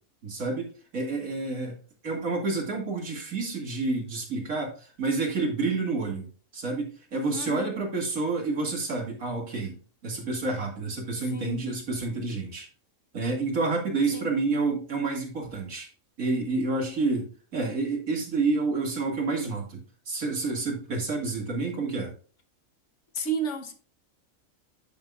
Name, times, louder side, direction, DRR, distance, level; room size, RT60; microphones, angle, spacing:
voice 1, 0.2-1.7 2.0-6.3 6.5-9.7 10.0-12.7 13.1-15.9 16.2-17.3 17.5-22.1, right 3 dB, 75° right, 2.7 m, -29 dB
voice 2, 7.3-7.7 11.2-11.6 14.1-14.3 23.1-23.7, right 3 dB, 60° left, 1.4 m, -32 dB
10.5 x 5.8 x 2.4 m
omnidirectional pair, 1.5 m